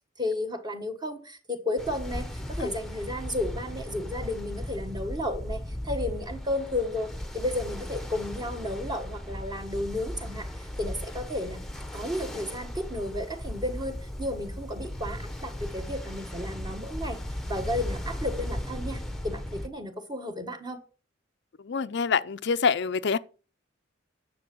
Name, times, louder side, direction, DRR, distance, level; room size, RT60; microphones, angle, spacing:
voice 1, 0.2-10.5 10.8-11.6 11.9-17.2 17.5-20.8, left 1 dB, 20° right, 1.6 m, -33 dB
Ocean, 1.8-19.7, left 1 dB, ahead, 1.0 m, -37 dB
voice 2, 21.6-23.2, left 5 dB, 60° left, 0.5 m, -26 dB
10.5 x 7.0 x 6.1 m
head